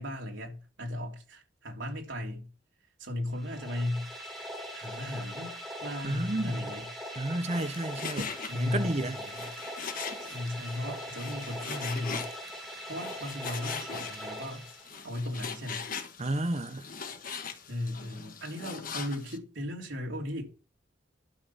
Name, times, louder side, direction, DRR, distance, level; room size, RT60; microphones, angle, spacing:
voice 1, 0.0-2.5 3.0-4.1 4.7-6.8 8.5-9.5 10.2-12.2 12.9-14.6 15.0-15.9 17.7-20.4, left 1 dB, 80° right, 3.2 m, -36 dB
sound 1, 3.3-15.3, equal, ahead, 3.3 m, -41 dB
voice 2, 6.0-6.7 7.2-8.2 8.6-9.5 16.2-16.9, right 1 dB, 35° right, 0.9 m, -31 dB
Frying (food), 7.5-19.4, left 6 dB, 45° left, 1.4 m, -41 dB
12.0 x 6.2 x 7.1 m
head